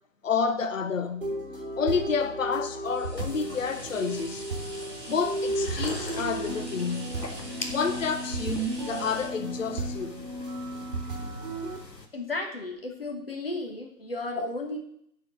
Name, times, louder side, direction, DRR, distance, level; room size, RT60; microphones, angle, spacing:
voice 1, 0.2-1.4 1.8-4.5 5.1-7.2 7.7-10.3 14.4-14.5, left 5 dB, 50° left, 0.6 m, -29 dB
sound 1, 1.2-11.8, right 2 dB, 30° right, 1.7 m, -34 dB
sound 2, 2.9-11.6 12.1-12.2, right 1 dB, 5° right, 2.6 m, -45 dB
sound 3, 3.2-12.1, left 3 dB, 80° left, 1.2 m, -42 dB
voice 2, 12.1-14.8, left 2 dB, 35° left, 1.1 m, -34 dB
6.6 x 4.5 x 6.6 m
figure-of-eight pair, 155°, 49 cm